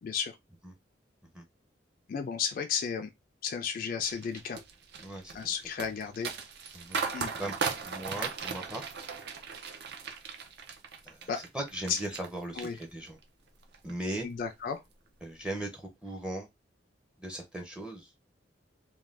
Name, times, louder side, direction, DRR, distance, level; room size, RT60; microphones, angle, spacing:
voice 1, 0.0-0.4 2.1-3.1 3.4-4.6 5.3-6.3 7.1-7.3 11.3-11.4 11.9-12.0 12.6-12.8 14.2-14.8, left 6 dB, 50° left, 0.3 m, -33 dB
sound 1, 4.0-12.3 12.6-13.2 13.6-13.9, right 5 dB, 60° right, 0.5 m, -37 dB
voice 2, 5.0-5.3 6.7-7.0 7.4-7.5 7.8-8.8 11.0-11.3 11.5-13.2 13.8-14.3 15.2-16.5 17.2-18.1, right 1 dB, 5° right, 0.5 m, -38 dB
2.5 x 2.2 x 3.2 m
head